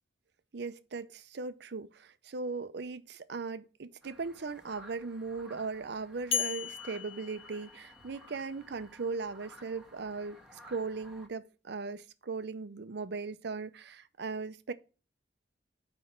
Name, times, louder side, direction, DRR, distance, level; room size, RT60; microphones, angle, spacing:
voice 1, 0.5-14.7, right 4 dB, 65° right, 0.6 m, -38 dB
sound 1, 4.0-11.3, equal, 5° right, 1.5 m, -55 dB
sound 2, 6.3-8.4, left 8 dB, 35° left, 0.5 m, -36 dB
7.9 x 5.3 x 4.4 m
head